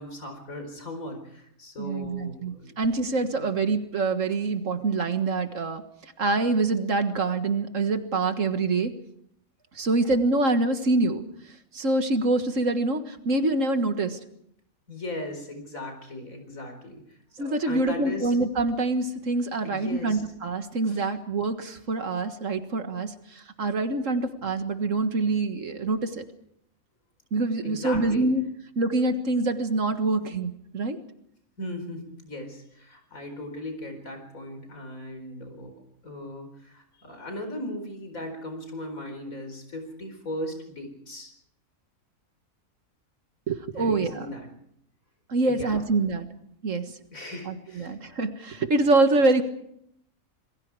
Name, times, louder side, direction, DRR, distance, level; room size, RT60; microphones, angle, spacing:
voice 1, 0.0-2.7 3.3-3.5 14.9-18.3 19.6-20.2 20.9-21.0 27.6-28.3 31.6-35.8 36.0-41.3 43.7-44.5 45.4-45.8 47.1-48.0, left 1 dB, 75° left, 5 dB, 4.9 m, -38 dB
voice 2, 1.8-5.8 6.2-8.9 9.8-11.2 11.7-14.2 17.4-26.2 27.3-28.4 28.8-31.0 43.5-44.3 45.3-46.3 46.6-46.8 47.5-49.4, right 3 dB, 65° right, 8 dB, 1.9 m, -25 dB
27.0 x 21.5 x 4.8 m, 0.74 s
omnidirectional pair, 1.5 m